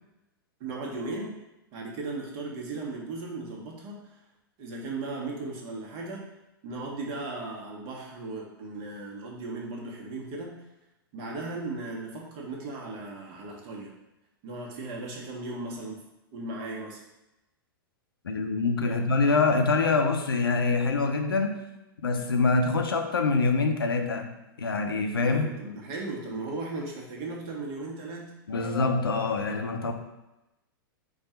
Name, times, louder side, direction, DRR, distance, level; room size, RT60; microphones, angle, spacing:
voice 1, 0.6-1.4 1.7-4.1 4.6-6.2 6.6-10.5 11.1-13.9 14.4-16.0 16.3-17.0 18.9-19.0 25.2-28.2, right 2 dB, 45° right, -2 dB, 1.3 m, -36 dB
voice 2, 18.2-21.6 22.0-24.3 24.6-25.5 28.5-29.9, left 3 dB, 85° left, 5 dB, 0.6 m, -25 dB
4.5 x 2.5 x 4.3 m, 0.95 s
hypercardioid pair, 105°, 12 cm